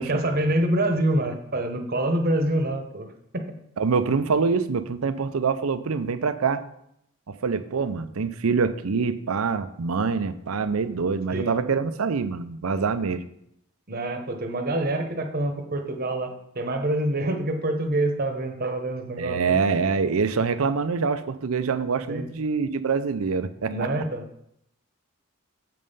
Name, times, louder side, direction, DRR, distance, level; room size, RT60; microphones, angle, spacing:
voice 1, 0.0-3.1 3.3-3.5 11.3-11.5 13.9-19.6 22.1-22.3 23.7-24.4, right 1 dB, 45° right, 5 dB, 1.1 m, -26 dB
voice 2, 3.8-6.6 7.3-13.2 19.2-23.9, right 5 dB, 85° right, 12 dB, 0.6 m, -25 dB
7.7 x 5.4 x 5.5 m, 0.75 s
head